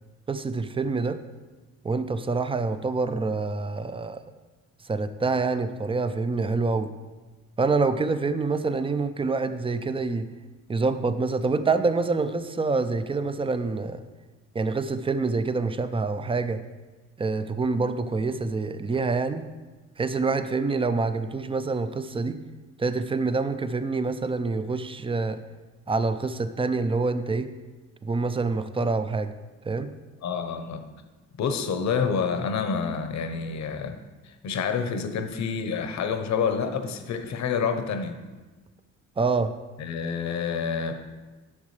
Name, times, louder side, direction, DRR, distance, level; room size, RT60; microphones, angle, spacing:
voice 1, 0.3-1.2 1.8-4.2 4.8-6.9 7.6-10.3 10.7-14.1 14.5-16.6 17.2-19.4 20.0-22.4 22.8-25.4 25.9-27.5 28.0-29.3 29.6-29.9 39.2-39.6, right 3 dB, 20° right, 11 dB, 0.5 m, -26 dB
voice 2, 30.2-30.8 31.4-34.0 34.2-38.2 39.8-41.0, left 6 dB, 65° left, 7 dB, 0.9 m, -28 dB
11.0 x 6.3 x 3.3 m, 1.2 s
cardioid pair, 90°, 30 cm